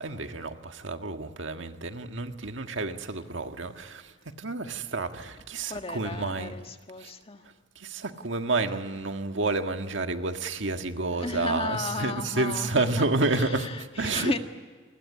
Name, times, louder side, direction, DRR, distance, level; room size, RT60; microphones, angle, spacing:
voice 1, 0.0-4.1 4.4-6.5 7.0-7.1 7.7-14.3, right 3 dB, 75° right, 6 dB, 1.8 m, -30 dB
voice 2, 5.6-7.4 11.2-14.4, left 3 dB, 30° left, 6 dB, 1.7 m, -34 dB
28.0 x 21.5 x 9.9 m, 1.5 s
head